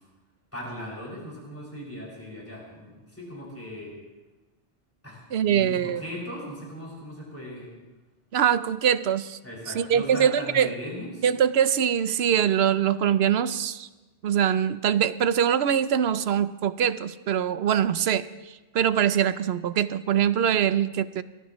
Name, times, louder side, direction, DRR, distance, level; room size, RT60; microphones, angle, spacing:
voice 1, 0.5-3.9 5.0-7.7 9.4-11.3, equal, 15° left, -5 dB, 6.3 m, -38 dB
voice 2, 5.3-6.0 8.3-9.4 9.7-10.7 11.2-13.9 14.2-18.3 18.7-21.2, right 9 dB, 75° right, 14 dB, 0.9 m, -23 dB
25.0 x 18.5 x 3.1 m, 1.2 s
omnidirectional pair, 1.1 m